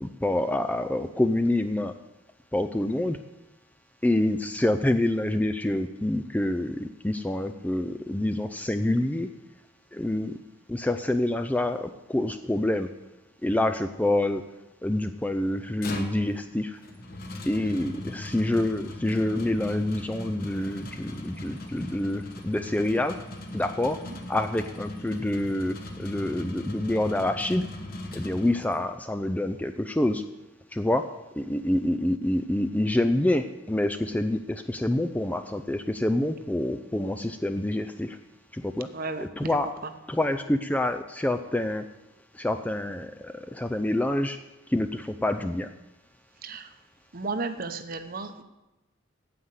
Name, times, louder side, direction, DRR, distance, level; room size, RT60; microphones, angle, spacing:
voice 1, 0.0-1.9 2.5-3.2 4.0-9.3 9.9-10.3 10.7-12.9 13.4-14.4 14.8-16.8 17.5-23.2 23.5-24.0 24.3-27.6 28.1-30.2 30.7-31.1 31.4-38.2 38.5-38.9 39.2-39.7 40.1-41.8 42.3-44.4 44.7-45.7, left 1 dB, 5° left, 8 dB, 0.3 m, -27 dB
sound 1, 15.5-29.0, left 1 dB, 45° left, 1.2 m, -40 dB
voice 2, 17.6-17.9 24.1-24.2 38.9-39.6 46.4-46.7 47.1-48.4, right 3 dB, 45° right, 9 dB, 0.8 m, -34 dB
9.4 x 7.9 x 8.1 m, 1.0 s
head